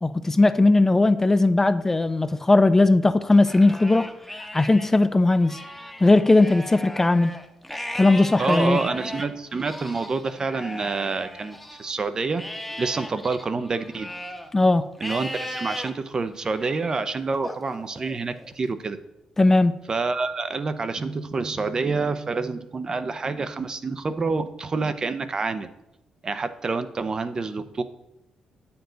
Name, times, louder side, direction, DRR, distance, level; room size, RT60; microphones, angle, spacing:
voice 1, 0.0-4.1 4.5-5.6 6.0-7.4 8.0-8.8 14.5-14.9 19.4-19.7, left 2 dB, 20° left, 12 dB, 0.4 m, -18 dB
Livestock farm animals working animals, 3.3-4.9 5.3-11.9 12.4-14.5 15.0-15.9 16.4-16.9 17.4-18.5, left 1 dB, ahead, 1.0 m, -37 dB
voice 2, 8.4-12.4 12.8-14.1 15.0-19.0 19.9-25.7 26.2-27.8, right 4 dB, 35° right, 11 dB, 0.6 m, -27 dB
9.1 x 7.0 x 3.9 m, 0.88 s
cardioid pair, 85°, 2 cm